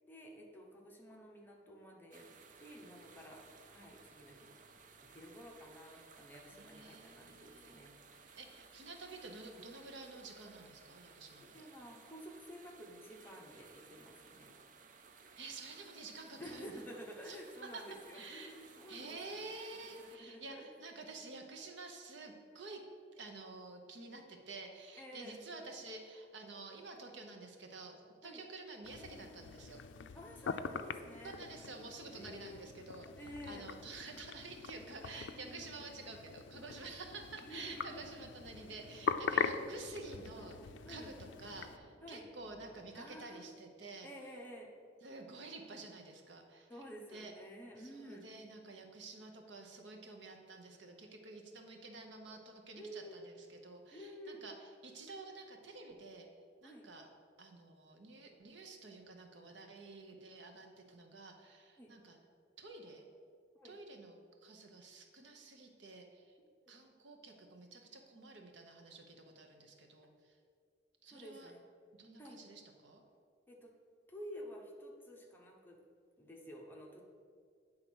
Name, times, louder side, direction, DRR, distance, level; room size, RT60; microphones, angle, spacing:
voice 1, 0.1-4.6 5.0-8.3 11.5-14.5 16.4-20.7 25.0-25.4 28.2-28.4 30.1-31.4 32.1-32.6 33.2-33.7 35.3-35.8 37.4-38.3 40.8-41.1 42.0-42.2 42.9-43.4 44.0-44.7 46.7-48.2 52.7-53.2 53.9-54.5 56.6-56.9 61.8-61.9 63.6-63.7 66.6-66.7 71.0-71.6 72.2-72.4 73.5-73.7 74.1-75.8 76.2-77.0, equal, 10° left, -2 dB, 0.9 m, -51 dB
sound 1, 2.1-20.2, right 5 dB, 45° right, 0.5 m, -59 dB
voice 2, 6.5-7.9 8.4-11.7 15.4-16.8 17.2-17.4 17.7-17.8 18.1-18.5 18.9-22.8 23.1-29.8 31.2-44.1 45.0-46.7 47.1-47.3 47.8-56.3 56.6-57.1 57.4-62.2 62.6-63.0 63.6-66.3 66.7-70.4 71.0-71.5 72.0-73.0, right 3 dB, 75° right, 3 dB, 0.9 m, -50 dB
sound 2, 28.8-41.8, left 6 dB, 75° left, 0.4 m, -42 dB
sound 3, 36.1-43.0, equal, 20° right, 1.5 m, -62 dB
9.1 x 3.7 x 6.2 m, 2.1 s
head